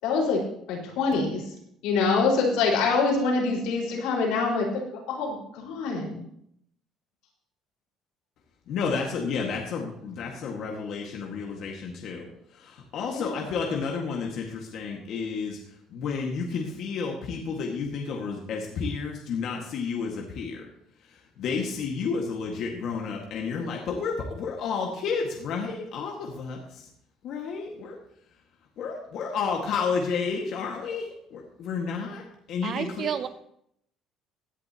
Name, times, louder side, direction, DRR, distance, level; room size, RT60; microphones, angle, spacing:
voice 1, 0.0-0.4 0.7-1.4 1.8-6.2 13.1-13.4, left 4 dB, 80° left, -2 dB, 4.9 m, -25 dB
voice 2, 8.7-12.3 12.5-15.6 15.9-20.6 21.4-26.8 27.2-28.0 28.8-33.1, left 5 dB, 50° left, 0 dB, 1.8 m, -31 dB
voice 3, 32.6-33.3, right 8 dB, 35° right, 12 dB, 0.6 m, -30 dB
17.0 x 11.0 x 3.0 m, 0.70 s
cardioid pair, 170°, 0 cm